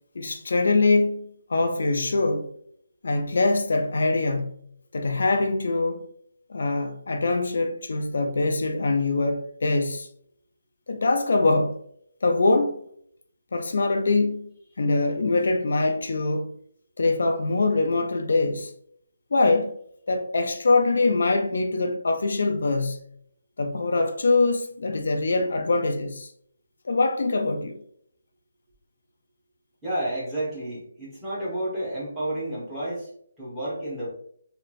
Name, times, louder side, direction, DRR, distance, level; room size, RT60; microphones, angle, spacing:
voice 1, 0.2-2.5 3.0-4.6 4.9-6.1 6.5-10.1 10.9-11.8 12.2-12.8 13.5-14.5 14.8-16.5 17.0-18.7 19.3-19.8 20.1-23.0 23.6-26.3 26.9-27.8, left 3 dB, 60° left, 0.3 m, -23 dB
voice 2, 29.8-33.1 33.4-34.1, right 1 dB, 5° right, 0.9 m, -30 dB
3.0 x 2.6 x 2.4 m
hypercardioid pair, 175°, 0 cm